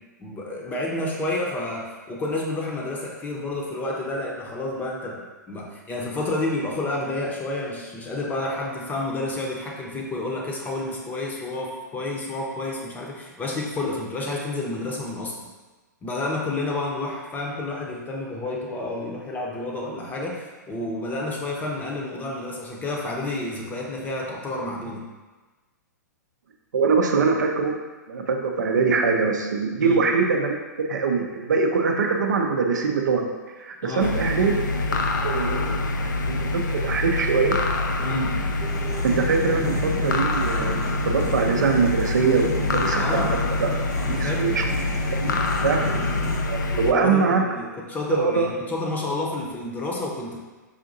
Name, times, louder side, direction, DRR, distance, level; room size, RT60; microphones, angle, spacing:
voice 1, 0.2-15.3 16.0-25.1 29.8-30.0 33.8-34.1 38.0-38.3 43.0-43.3 44.0-44.8 45.9-46.1 46.7-50.4, left 2 dB, 15° left, -2 dB, 0.6 m, -30 dB
voice 2, 26.7-27.7 28.1-33.3 33.6-34.5 34.9-37.6 39.0-40.8 41.0-43.2 43.6-43.7 44.1-44.6 45.2-45.3 45.6-46.0 46.5-47.4 48.1-48.5, right 4 dB, 75° right, 3 dB, 0.5 m, -23 dB
sound 1, 34.0-46.9, left 2 dB, 80° left, 0.3 m, -25 dB
sound 2, 38.6-46.4, equal, 30° right, 0.7 m, -34 dB
4.9 x 2.6 x 2.6 m, 1.2 s
hypercardioid pair, 115°, 10 cm